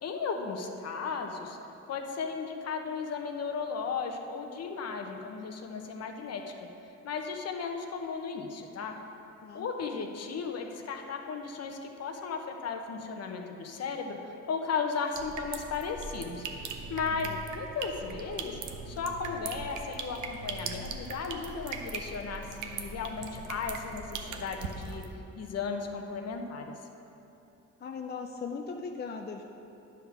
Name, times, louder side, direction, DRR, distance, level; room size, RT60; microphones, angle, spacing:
voice 1, 0.0-1.6 1.9-6.4 7.0-9.0 9.5-17.3 17.5-18.6 18.9-25.0 25.4-26.7, left 5 dB, 55° left, 3 dB, 0.9 m, -35 dB
sound 1, 15.1-25.1, right 4 dB, 80° right, 0.7 m, -40 dB
voice 2, 17.1-17.4 27.8-29.4, left 5 dB, 35° left, 3 dB, 0.5 m, -39 dB
10.5 x 3.6 x 6.0 m, 3.0 s
cardioid pair, 90°, 30 cm